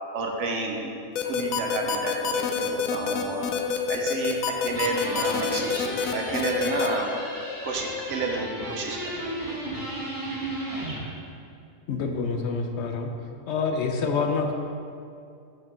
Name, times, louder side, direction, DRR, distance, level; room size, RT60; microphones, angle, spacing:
voice 1, 0.1-0.9 1.2-3.5 3.9-4.4 4.6-5.9 6.1-7.1 7.6-9.3, right 3 dB, 65° right, 1 dB, 1.0 m, -30 dB
sound 1, 1.2-6.9, left 6 dB, 90° left, 1.0 m, -26 dB
sound 2, 4.7-11.1, right 1 dB, 15° right, 1.2 m, -34 dB
voice 2, 11.9-13.1 13.5-14.5, left 4 dB, 65° left, 4 dB, 0.8 m, -27 dB
5.9 x 4.3 x 6.0 m, 2.5 s
omnidirectional pair, 1.4 m